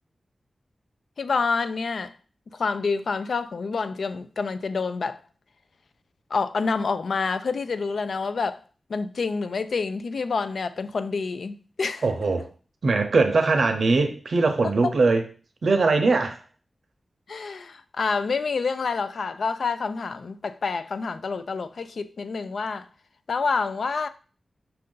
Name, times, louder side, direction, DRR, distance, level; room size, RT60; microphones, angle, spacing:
voice 1, 1.2-2.1 2.5-5.2 6.3-8.6 8.9-12.0 14.8-14.9 17.3-22.9 23.3-24.1, left 4 dB, 80° left, 0.3 m, -27 dB
voice 2, 12.0-12.5 12.8-15.2 15.6-16.4, right 3 dB, 70° right, 0.6 m, -21 dB
5.6 x 2.6 x 3.7 m
wide cardioid pair, 85°, 0 cm